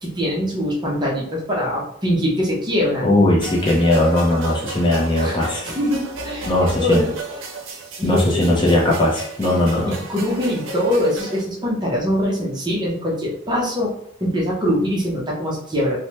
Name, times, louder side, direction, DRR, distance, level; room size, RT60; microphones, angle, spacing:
voice 1, 0.0-3.2 5.2-7.1 8.0-8.6 9.9-13.9 14.2-16.0, equal, 20° right, -3 dB, 0.7 m, -23 dB
voice 2, 3.0-5.7 6.5-7.0 8.0-9.9, left 1 dB, 25° left, -3 dB, 0.6 m, -18 dB
sound 1, 3.4-11.4, right 2 dB, 80° right, 0.5 m, -34 dB
3.2 x 2.1 x 2.9 m, 0.70 s
head